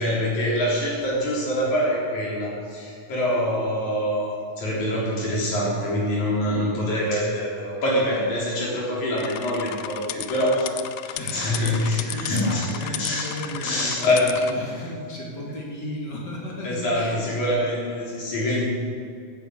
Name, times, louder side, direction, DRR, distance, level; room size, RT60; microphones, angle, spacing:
voice 1, 0.0-14.3 16.6-18.7, left 1 dB, 65° left, -5 dB, 5.2 m, -25 dB
sound 1, 9.2-14.5, left 13 dB, 85° left, 1.5 m, -35 dB
voice 2, 11.2-17.5 17.8-18.1, left 1 dB, 35° left, -3 dB, 3.0 m, -35 dB
15.5 x 10.0 x 6.6 m, 2.4 s
omnidirectional pair, 3.7 m